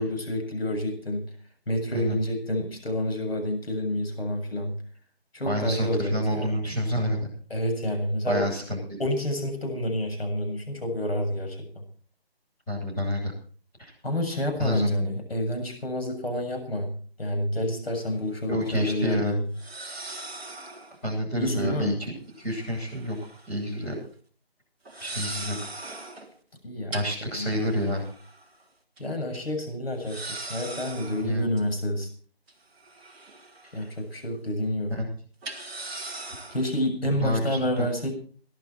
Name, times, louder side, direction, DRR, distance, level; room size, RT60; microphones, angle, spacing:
voice 1, 0.0-1.4 1.7-4.8 5.3-6.5 7.5-8.5 9.0-11.6 14.0-19.4 21.3-21.9 26.6-27.0 27.3-27.5 29.0-32.1 33.7-35.0 36.5-38.1, left 1 dB, 70° left, 4 dB, 7.4 m, -29 dB
voice 2, 5.4-7.3 8.3-9.0 12.7-13.3 13.8-13.9 14.6-14.9 18.5-19.3 21.0-22.1 22.4-23.2 23.5-23.9 25.0-25.5 26.9-28.1 31.2-31.5 33.8-33.9 34.9-35.1 37.0-37.9, equal, 10° left, -8 dB, 7.9 m, -28 dB
sound 1, 17.9-18.0 19.5-21.0 22.4-23.5 23.8-24.1 24.8-26.3 26.9-28.6 29.0-29.1 29.3-29.4 30.0-31.6 32.5-33.9 34.2-34.4 35.4-36.7, right 2 dB, 5° right, 1.4 m, -40 dB
22.5 x 11.5 x 4.5 m, 0.44 s
figure-of-eight pair, 170°, 31 cm